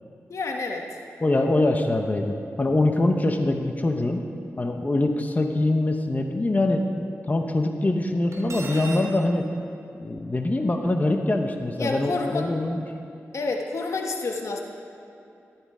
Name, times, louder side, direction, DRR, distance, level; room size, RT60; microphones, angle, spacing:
voice 1, 0.3-1.0 11.8-12.5 13.3-14.6, left 3 dB, 70° left, 2 dB, 1.3 m, -29 dB
voice 2, 1.2-4.2 4.6-6.8 7.3-9.5 10.0-12.8, left 2 dB, 30° left, 4 dB, 1.1 m, -23 dB
Cutlery silverware, 8.3-9.1, right 3 dB, 65° right, 3.1 m, -37 dB
14.0 x 12.0 x 4.9 m, 2.6 s
cardioid pair, 60°, 5 cm